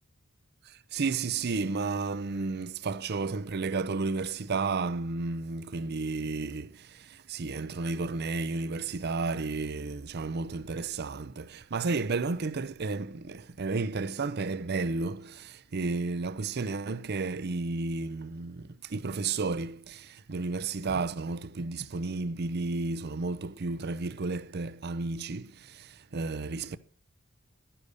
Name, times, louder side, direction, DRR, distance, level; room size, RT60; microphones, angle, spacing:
voice 1, 0.6-26.8, right 3 dB, 50° right, 0.6 m, -32 dB
11.0 x 10.0 x 6.6 m
head